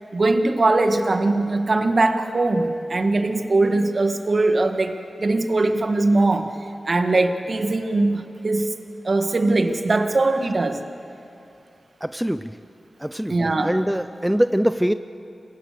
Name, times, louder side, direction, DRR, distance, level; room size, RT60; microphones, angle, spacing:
voice 1, 0.1-6.5 6.9-8.7 9.0-10.8 13.3-13.7, right 2 dB, 55° right, 6 dB, 1.7 m, -21 dB
voice 2, 12.0-12.5 13.0-14.9, equal, 5° right, 11 dB, 0.6 m, -23 dB
29.0 x 16.5 x 6.8 m, 2.7 s
cardioid pair, 45°, 0 cm